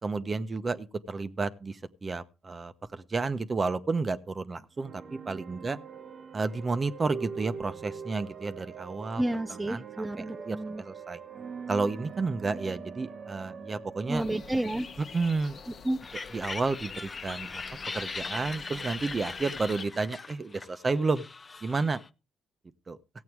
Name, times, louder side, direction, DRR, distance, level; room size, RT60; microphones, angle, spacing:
voice 1, 0.0-5.8 6.3-9.2 9.7-11.2 11.7-14.2 15.1-15.6 16.3-17.6 17.9-21.2 21.6-22.0 22.9-23.0, right 3 dB, 30° right, 1.0 m, -31 dB
sound 1, 4.8-16.4, right 6 dB, 50° right, 1.1 m, -43 dB
voice 2, 9.2-10.8 14.1-14.9 15.8-16.0, right 1 dB, 10° right, 0.6 m, -30 dB
sound 2, 14.1-19.9, left 6 dB, 50° left, 1.1 m, -45 dB
sound 3, 16.0-22.1, left 4 dB, 30° left, 0.7 m, -40 dB
15.5 x 8.5 x 4.7 m
cardioid pair, 90°, 0 cm